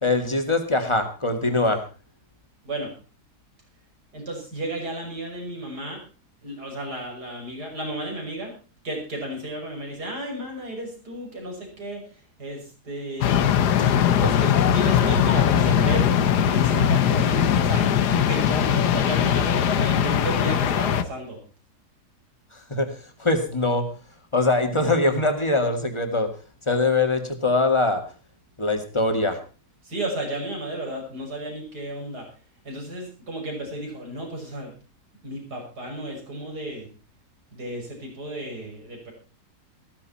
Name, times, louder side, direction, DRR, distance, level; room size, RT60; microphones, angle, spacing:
voice 1, 0.0-1.8 22.5-23.9 24.3-26.3 26.6-28.0 28.6-29.4, left 2 dB, 20° left, 6 dB, 2.1 m, -23 dB
voice 2, 2.6-2.9 4.1-6.0 6.4-8.5 8.8-13.5 14.2-16.2 16.5-21.4 29.8-32.3 32.6-34.7 35.2-36.9 37.5-39.1, right 1 dB, 80° right, 1 dB, 6.5 m, -33 dB
sound 1, 13.2-21.0, left 9 dB, 90° left, 1.5 m, -20 dB
15.0 x 14.0 x 4.2 m, 0.35 s
omnidirectional pair, 1.7 m